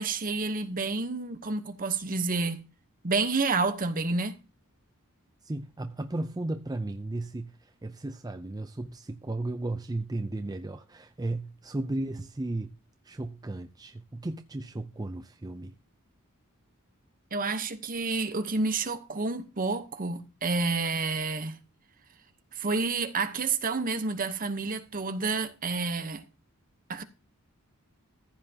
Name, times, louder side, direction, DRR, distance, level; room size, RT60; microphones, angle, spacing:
voice 1, 0.0-2.6 3.0-4.4 17.3-21.6 22.5-26.2 26.9-27.0, right 3 dB, 40° right, 0.9 m, -29 dB
voice 2, 5.4-12.7 13.0-15.7, right 2 dB, 20° right, 0.5 m, -35 dB
14.5 x 7.5 x 2.8 m
head